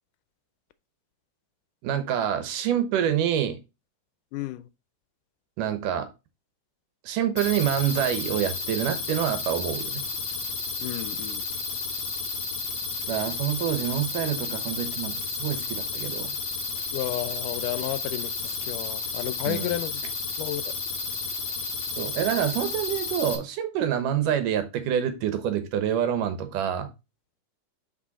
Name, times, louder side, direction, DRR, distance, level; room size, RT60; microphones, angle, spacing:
voice 1, 1.8-3.6 5.6-6.1 7.0-10.0 13.1-15.1 15.4-16.3 19.5-19.7 22.0-26.9, right 10 dB, 80° right, 2.7 m, -27 dB
voice 2, 4.3-4.7 10.8-11.4 16.9-20.0 20.4-20.7, left 15 dB, 80° left, 2.1 m, -32 dB
sound 1, 7.4-23.4, left 4 dB, 45° left, 1.6 m, -32 dB
6.2 x 5.5 x 4.1 m
omnidirectional pair, 3.7 m